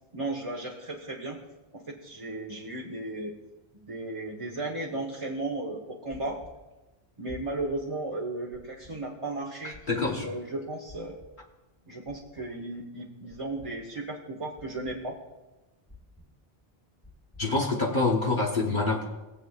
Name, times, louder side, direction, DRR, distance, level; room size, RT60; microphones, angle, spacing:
voice 1, 0.1-1.4 1.7-3.3 3.8-6.4 7.2-9.8 10.2-11.2 11.9-15.1, right 2 dB, 30° right, -2 dB, 1.1 m, -35 dB
sound 1, 6.1-6.5 7.3-7.7 8.5-8.9 9.7-10.1 10.9-11.3 12.1-12.5 13.3-13.7 14.6-15.0 15.9-16.3 17.0-17.5, left 3 dB, 10° left, 1.3 m, -49 dB
voice 2, 9.6-10.3 17.4-19.1, left 3 dB, 55° left, -1 dB, 1.3 m, -26 dB
21.5 x 7.9 x 2.4 m, 1.1 s
omnidirectional pair, 1.0 m